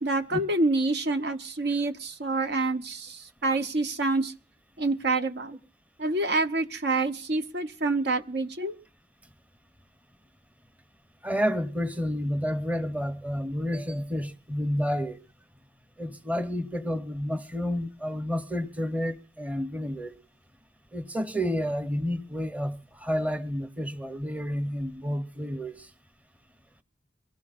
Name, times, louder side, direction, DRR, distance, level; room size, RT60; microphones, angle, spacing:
voice 1, 0.0-4.3 4.8-5.6 6.0-8.8, right 2 dB, 65° right, 0.9 m, -27 dB
voice 2, 11.2-15.2 16.0-20.1 20.9-25.9, equal, 10° right, 0.9 m, -30 dB
24.0 x 16.5 x 2.5 m
head